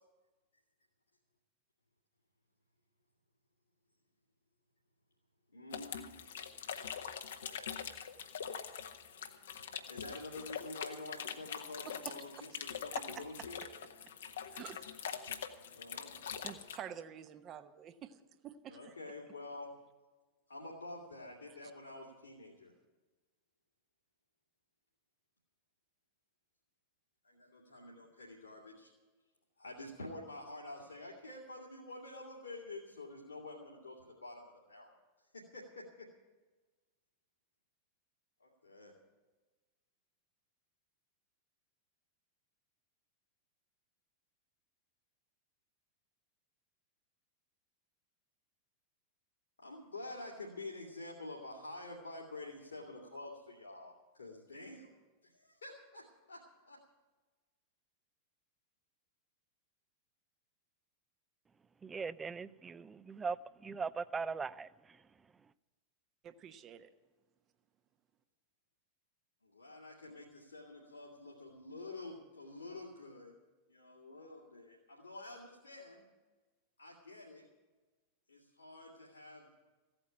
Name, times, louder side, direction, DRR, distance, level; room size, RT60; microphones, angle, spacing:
voice 1, 5.5-6.3 7.4-7.8 9.9-13.6 15.8-16.2 18.7-19.7 20.5-22.7 27.2-28.9 29.6-35.0 35.3-36.1 38.4-38.9 49.6-54.9 55.2-56.8 69.4-73.4 73.7-76.0 76.8-77.4 78.3-79.5, left 2 dB, 80° left, 2.2 m, -48 dB
sound 1, 5.7-16.8, left 8 dB, 65° left, 1.0 m, -44 dB
voice 2, 11.9-12.5 12.9-13.2 14.5-15.4 16.4-19.0 66.2-66.9, right 9 dB, 30° right, 1.0 m, -49 dB
voice 3, 61.8-63.4 63.6-64.7, right 5 dB, 15° right, 0.4 m, -39 dB
15.5 x 8.8 x 8.7 m
figure-of-eight pair, 90°, 0 cm